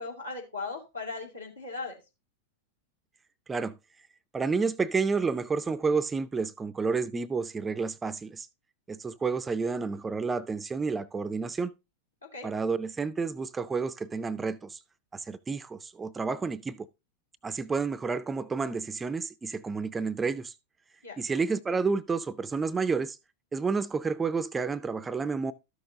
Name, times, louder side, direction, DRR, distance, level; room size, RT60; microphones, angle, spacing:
voice 1, 0.0-2.0 12.2-12.5 21.0-21.2, left 3 dB, 80° left, 2.3 m, -38 dB
voice 2, 4.3-8.5 8.9-11.7 12.4-14.8 15.1-16.9 17.4-20.5 21.2-23.2 23.5-25.5, right 4 dB, 15° right, 0.4 m, -30 dB
13.0 x 6.5 x 2.7 m
figure-of-eight pair, 90°, 0 cm